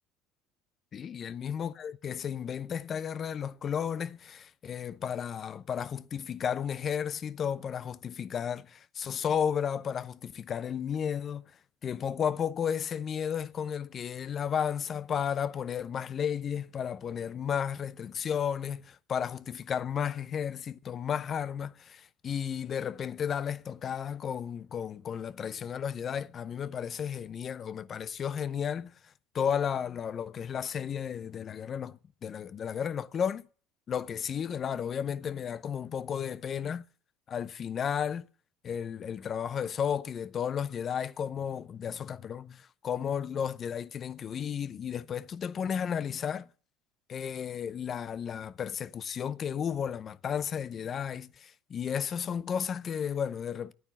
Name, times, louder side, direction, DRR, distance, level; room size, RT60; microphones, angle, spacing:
voice 1, 0.9-11.4 11.8-33.4 33.9-36.8 37.3-38.3 38.6-46.5 47.1-53.7, left 8 dB, 40° left, 0.6 m, -33 dB
11.0 x 9.4 x 7.3 m
supercardioid pair, 90°, 0 cm